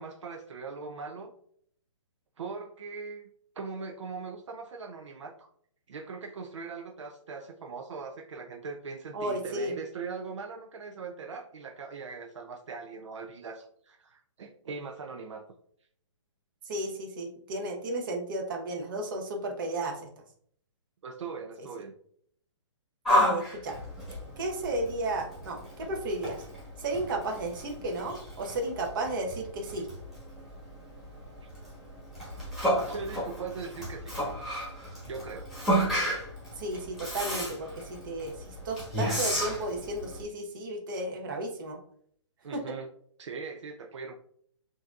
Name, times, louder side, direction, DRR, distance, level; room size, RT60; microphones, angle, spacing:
voice 1, 0.0-1.3 2.4-3.3 3.6-5.5 5.9-15.4 21.0-21.9 32.8-34.1 35.0-35.5 42.4-42.9 43.2-44.1, right 4 dB, 70° right, 4 dB, 0.5 m, -40 dB
voice 2, 9.1-9.8 16.7-20.1 23.1-23.8 24.4-26.4 26.8-29.9 36.6-41.8 42.5-42.6, right 2 dB, 45° right, 2 dB, 1.0 m, -33 dB
Yell, 23.0-40.2, equal, ahead, 1.2 m, -32 dB
6.0 x 2.7 x 2.4 m, 0.63 s
hypercardioid pair, 155°, 16 cm